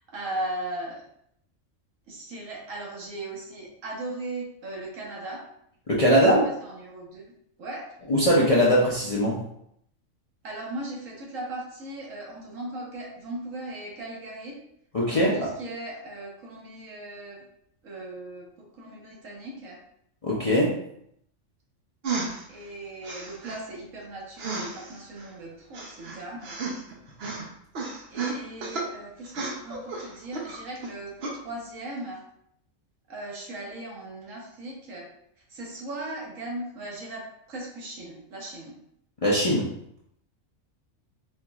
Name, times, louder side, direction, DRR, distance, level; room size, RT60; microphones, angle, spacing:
voice 1, 0.1-1.0 2.1-5.4 6.1-7.2 7.6-7.9 10.4-14.6 15.1-17.4 17.8-19.8 22.5-26.6 28.1-31.1 31.4-32.2 33.1-35.1 35.5-38.8, right 1 dB, 80° right, -2 dB, 1.3 m, -38 dB
voice 2, 5.9-6.5 8.1-9.4 14.9-15.5 20.2-20.8 39.2-39.7, equal, 40° left, -6 dB, 0.5 m, -21 dB
sound 1, 22.0-22.4 23.0-23.6 24.4-25.3 25.7-26.9 27.2-27.4 27.7-28.9 29.2-30.9 31.2-31.4, right 4 dB, 55° right, 0.9 m, -33 dB
4.3 x 2.9 x 2.3 m, 0.72 s
omnidirectional pair, 1.4 m